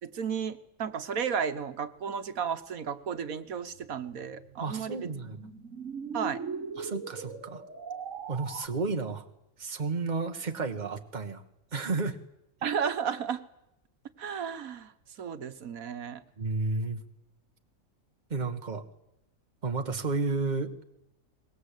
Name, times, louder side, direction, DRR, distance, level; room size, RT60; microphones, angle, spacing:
voice 1, 0.0-5.1 6.1-6.4 12.6-13.4 14.2-14.9 15.2-16.2, right 7 dB, 85° right, 10 dB, 1.6 m, -33 dB
sound 1, 3.7-8.7, right 5 dB, 65° right, 1.9 m, -40 dB
voice 2, 4.6-5.4 6.8-7.6 8.3-9.3 9.6-11.4 11.7-12.2 16.4-17.0 18.3-18.9 19.6-20.7, right 3 dB, 35° right, 6 dB, 1.5 m, -32 dB
23.5 x 21.0 x 8.4 m, 0.88 s
omnidirectional pair, 1.4 m